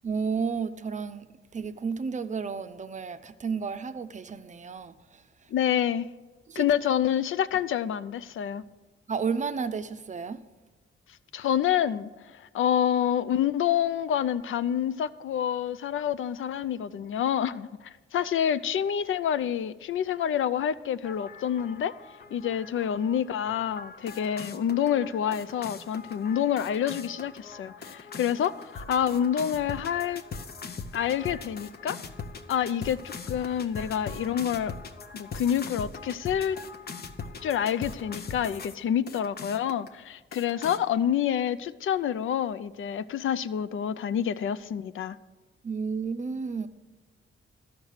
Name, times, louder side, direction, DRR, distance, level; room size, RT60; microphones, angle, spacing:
voice 1, 0.0-5.5 6.5-6.7 9.1-10.5 45.6-46.7, right 5 dB, 35° right, 0.5 m, -32 dB
voice 2, 5.5-6.1 6.6-8.6 11.3-21.9 22.3-30.2 30.9-32.0 32.5-34.7 35.1-36.6 37.4-45.2, left 9 dB, 75° left, 0.4 m, -28 dB
sound 1, 21.0-38.8 39.1-39.9 40.3-40.8, left 5 dB, 50° left, 0.8 m, -41 dB
13.0 x 5.9 x 6.5 m
wide cardioid pair, 115°, 21 cm